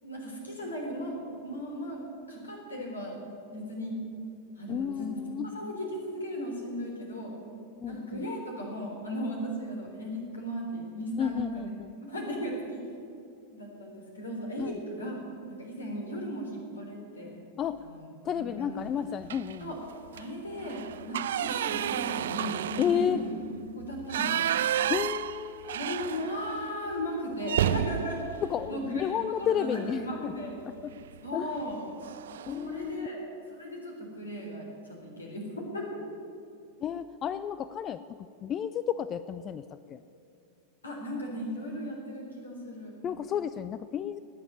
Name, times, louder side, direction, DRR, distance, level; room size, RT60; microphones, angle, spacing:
voice 1, 0.0-2.0 2.3-3.2 3.5-4.0 4.6-5.2 5.5-7.3 7.9-11.7 12.1-12.8 13.5-15.1 15.5-17.4 17.8-18.1 18.3-18.7 19.6-19.8 20.1-23.3 23.7-24.5 25.7-28.2 28.7-29.1 29.4-30.6 31.2-31.8 32.6-33.2 33.6-36.0 40.8-42.9, equal, 75° left, 0 dB, 3.9 m, -36 dB
voice 2, 4.7-5.5 7.8-8.3 11.2-11.9 14.6-14.8 17.6-17.8 18.2-19.7 22.8-23.2 24.9-25.8 28.4-30.3 30.6-30.9 31.3-31.6 32.5-33.1 36.8-40.0 43.0-44.2, left 8 dB, 30° left, 14 dB, 0.4 m, -32 dB
sound 1, 19.3-19.7 20.1-20.2 20.6-26.6 26.9-27.0 27.4-29.6 30.9-31.2 31.6-31.7 32.0-32.6, right 11 dB, 60° right, 0.4 m, -31 dB
19.0 x 7.1 x 9.8 m, 2.6 s
figure-of-eight pair, 90°, 0 cm